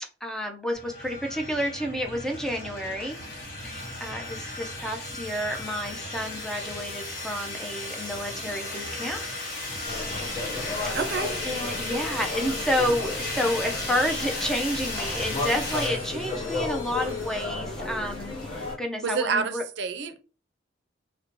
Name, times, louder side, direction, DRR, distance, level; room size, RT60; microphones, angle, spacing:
voice 1, 0.2-3.2 3.6-9.2 11.5-19.6, equal, 5° left, 0.4 m, -30 dB
sound 1, 0.7-17.5, left 2 dB, 50° left, 1.2 m, -35 dB
sound 2, 9.8-18.7, left 3 dB, 30° left, 0.9 m, -34 dB
voice 2, 10.9-11.4 19.0-20.2, right 5 dB, 70° right, 0.4 m, -28 dB
2.6 x 2.1 x 2.9 m
head